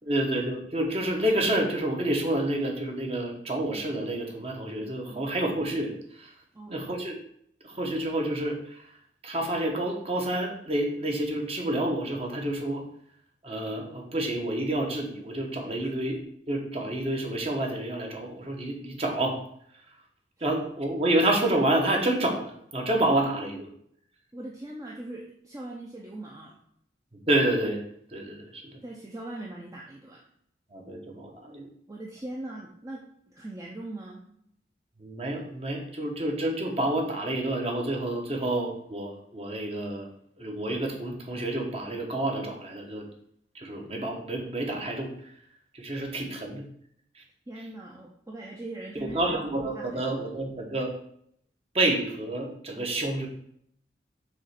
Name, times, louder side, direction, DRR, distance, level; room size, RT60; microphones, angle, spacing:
voice 1, 0.1-6.3 6.7-7.2 7.6-8.8 9.2-12.8 13.4-16.2 16.5-19.4 20.4-23.6 27.3-27.8 28.1-28.8 30.7-31.7 35.0-40.1 40.4-43.0 43.5-45.3 45.7-46.7 47.1-47.2 48.9-50.9 51.7-53.3, right 1 dB, 35° right, 1 dB, 1.0 m, -29 dB
voice 2, 24.3-26.6 28.8-30.2 31.9-34.2 47.5-49.2 49.7-50.2, right 1 dB, 20° right, -2 dB, 0.6 m, -40 dB
6.3 x 3.1 x 5.8 m, 0.69 s
head